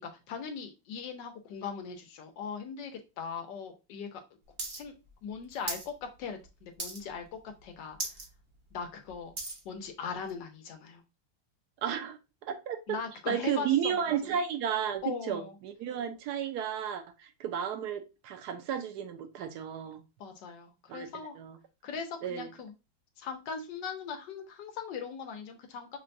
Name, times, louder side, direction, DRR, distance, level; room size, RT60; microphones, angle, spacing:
voice 1, 0.0-4.2 4.7-4.9 5.2-7.2 7.6-8.2 8.7-9.3 9.6-11.0 12.9-14.1 15.0-15.6 20.2-21.4 21.8-22.7 23.2-26.0, left 6 dB, 80° left, 1.4 m, -40 dB
sound 1, 4.6-4.8 5.1-5.9 6.2-6.5 6.8-7.2 7.6-7.7 7.9-8.3 8.7-9.6 10.3-10.4, right 2 dB, 45° right, 0.7 m, -37 dB
voice 2, 11.8-13.0 13.3-20.0 20.9-21.1 21.4-21.5 22.2-22.5, right 8 dB, 70° right, 1.1 m, -33 dB
5.8 x 2.2 x 2.5 m
omnidirectional pair, 1.9 m